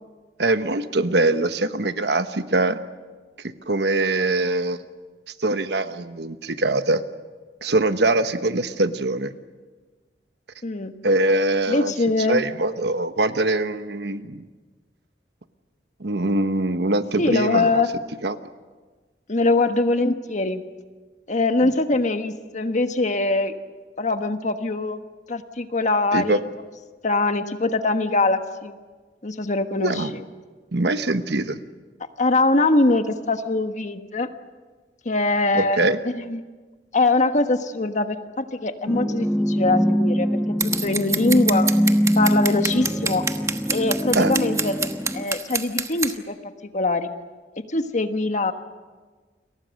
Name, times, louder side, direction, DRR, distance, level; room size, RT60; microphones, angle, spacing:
voice 1, 0.4-2.8 3.4-4.8 5.4-7.0 7.6-9.3 11.0-11.9 12.3-14.4 16.0-17.8 18.2-18.4 21.6-21.7 26.1-26.4 29.8-30.1 30.7-31.6 35.5-36.0 44.1-44.3, right 2 dB, 70° right, 10 dB, 1.2 m, -23 dB
voice 2, 10.6-10.9 11.7-12.4 17.2-17.9 19.3-20.6 21.3-23.5 24.0-25.0 25.3-26.4 27.0-28.8 29.2-30.0 32.2-34.3 35.0-36.4 36.9-40.3 40.8-41.7 42.1-43.2 43.7-44.9 45.1-46.4 46.7-47.1 47.6-48.5, left 2 dB, 45° left, 8 dB, 1.4 m, -22 dB
sound 1, 38.9-45.2, equal, ahead, 1.2 m, -23 dB
Scissors, 40.6-46.1, right 4 dB, 20° right, 1.2 m, -26 dB
29.5 x 23.5 x 6.5 m, 1.4 s
head